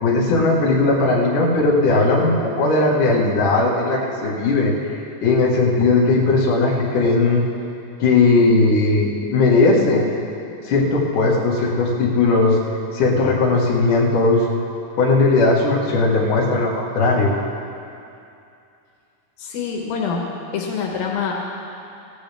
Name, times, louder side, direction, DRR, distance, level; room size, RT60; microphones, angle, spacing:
voice 1, 0.0-4.7 5.2-7.4 8.0-10.1 10.6-12.6 12.9-14.4 15.0-17.3, left 3 dB, 65° left, -4 dB, 3.2 m, -17 dB
voice 2, 19.4-20.3 20.5-21.3, left 6 dB, 90° left, -1 dB, 3.1 m, -25 dB
17.0 x 15.5 x 3.5 m, 2.6 s
omnidirectional pair, 4.1 m